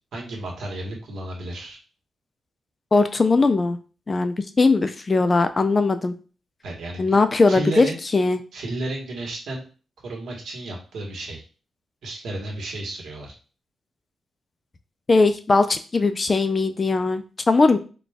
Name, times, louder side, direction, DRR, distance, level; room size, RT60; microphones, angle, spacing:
voice 1, 0.1-1.8 6.6-7.2 7.5-8.0 8.5-9.6 10.0-11.4 12.0-13.3, right 2 dB, 80° right, 0 dB, 1.3 m, -32 dB
voice 2, 2.9-3.8 4.1-6.1 7.0-8.4 15.1-17.8, left 3 dB, 25° left, 9 dB, 0.3 m, -19 dB
4.0 x 2.2 x 3.4 m, 0.36 s
wide cardioid pair, 145°, 0 cm